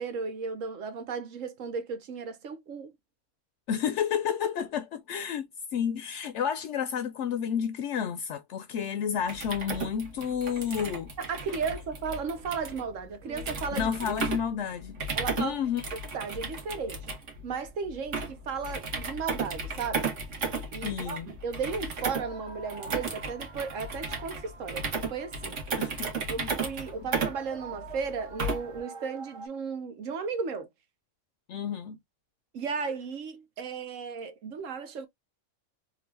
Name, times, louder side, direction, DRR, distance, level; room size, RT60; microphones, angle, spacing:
voice 1, 0.0-2.9 11.2-13.9 15.1-15.6 16.1-17.1 17.4-20.1 20.7-25.6 26.3-30.7 32.5-35.1, right 5 dB, 90° right, 1.2 m, -35 dB
voice 2, 3.7-5.5 5.7-11.1 13.7-15.0 15.4-15.8 20.8-21.3 25.8-26.5 31.5-32.0, left 8 dB, 70° left, 0.8 m, -31 dB
sound 1, 9.2-28.8, right 4 dB, 70° right, 1.6 m, -35 dB
sound 2, 22.0-29.5, right 4 dB, 45° right, 0.4 m, -47 dB
3.8 x 2.4 x 3.2 m
omnidirectional pair, 1.3 m